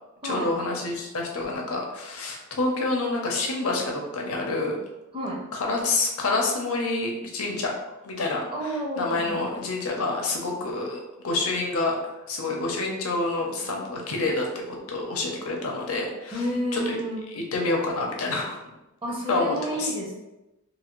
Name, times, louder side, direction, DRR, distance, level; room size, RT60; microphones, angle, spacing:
voice 1, 0.2-4.8 5.5-7.7 8.0-11.9 12.3-16.4 16.7-17.0 17.3-18.7 19.3-19.9, left 2 dB, 80° left, 0 dB, 0.6 m, -28 dB
voice 2, 8.5-9.5 16.3-17.2 19.0-20.2, equal, 25° right, -4 dB, 0.7 m, -30 dB
2.7 x 2.5 x 3.0 m, 0.97 s
head